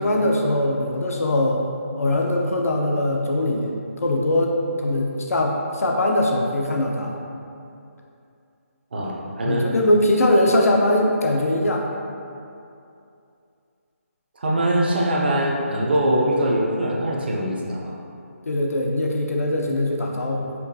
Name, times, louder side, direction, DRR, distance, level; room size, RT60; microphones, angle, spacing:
voice 1, 0.0-1.6 2.0-7.1 9.4-11.9 18.5-20.5, left 1 dB, 80° left, 0 dB, 0.5 m, -21 dB
voice 2, 8.9-9.6 14.4-17.9, right 1 dB, 45° right, -3 dB, 0.5 m, -22 dB
4.4 x 3.0 x 2.7 m, 2.6 s
hypercardioid pair, 175°, 8 cm